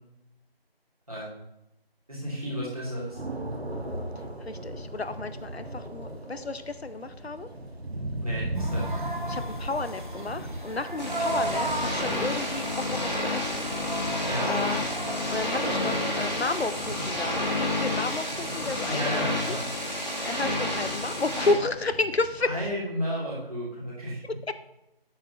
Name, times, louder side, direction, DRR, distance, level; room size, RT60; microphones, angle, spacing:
voice 1, 2.1-3.2 8.2-8.9 14.3-14.6 18.9-19.7 22.4-24.2, equal, 35° right, -6 dB, 2.9 m, -32 dB
sound 1, 2.9-22.7, right 1 dB, 85° right, 1.4 m, -39 dB
voice 2, 4.5-7.5 9.3-13.7 14.5-14.9 15.3-19.1 19.4-19.6 20.2-22.5, left 3 dB, 85° left, 11 dB, 0.8 m, -31 dB
sound 2, 8.6-16.6, right 2 dB, 50° right, 1.0 m, -36 dB
sound 3, 11.0-21.5, left 1 dB, 45° left, 1.7 m, -30 dB
8.6 x 7.0 x 2.9 m, 0.88 s
figure-of-eight pair, 175°, 31 cm